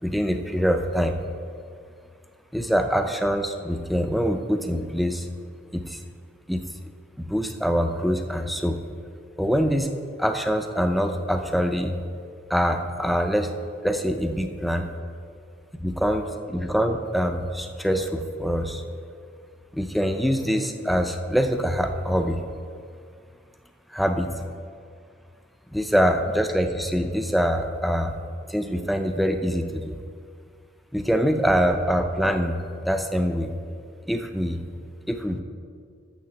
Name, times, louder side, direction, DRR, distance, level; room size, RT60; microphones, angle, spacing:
voice 1, 0.0-1.2 2.5-5.3 5.7-6.0 6.5-6.7 7.2-8.8 9.4-9.9 10.2-12.0 12.5-13.5 13.8-14.9 15.8-18.8 19.7-22.4 23.9-24.5 25.7-28.2 28.5-30.0 30.9-33.5 34.1-34.7 35.1-35.4, equal, ahead, 6 dB, 0.4 m, -24 dB
6.7 x 6.5 x 6.5 m, 2.2 s
head